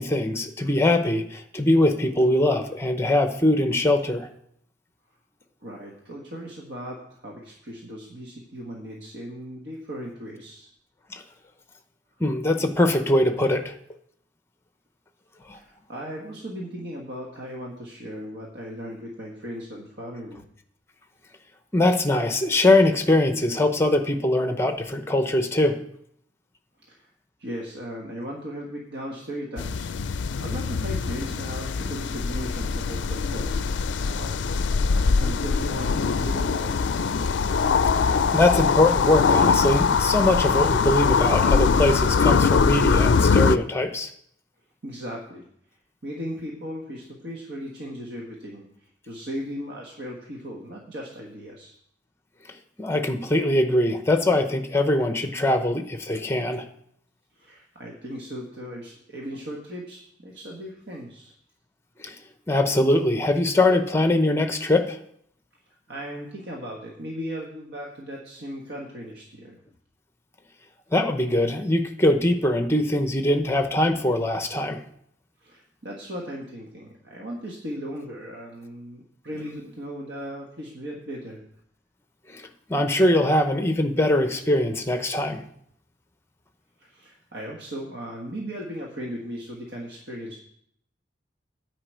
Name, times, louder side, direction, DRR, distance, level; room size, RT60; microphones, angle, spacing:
voice 1, 0.0-4.3 11.1-11.2 12.2-13.7 15.5-15.6 21.7-25.8 38.1-44.1 52.8-56.7 62.0-62.2 62.5-65.0 70.9-74.8 82.3-85.4, left 1 dB, 15° left, 7 dB, 0.8 m, -22 dB
voice 2, 5.6-10.7 15.5-20.4 26.8-27.1 27.4-34.4 35.0-36.7 44.8-45.5 46.0-51.8 57.3-61.3 65.9-69.6 75.4-81.4 86.8-90.4, equal, 60° right, -2 dB, 1.5 m, -37 dB
sound 1, 29.6-43.6, left 5 dB, 70° left, 0.4 m, -22 dB
9.6 x 5.1 x 8.1 m, 0.69 s
head